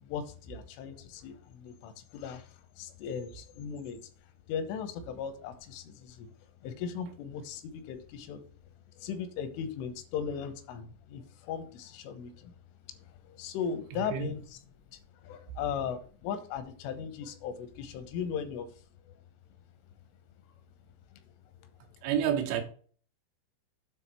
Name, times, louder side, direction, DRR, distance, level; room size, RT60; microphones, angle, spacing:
voice 1, 0.0-4.0 4.5-6.3 6.6-8.5 9.0-12.5 13.0-14.4 14.9-18.7, left 7 dB, 80° left, 3.5 m, -38 dB
voice 2, 13.9-14.3 22.0-22.6, right 9 dB, 80° right, 3.5 m, -29 dB
9.1 x 3.6 x 6.0 m
omnidirectional pair, 5.6 m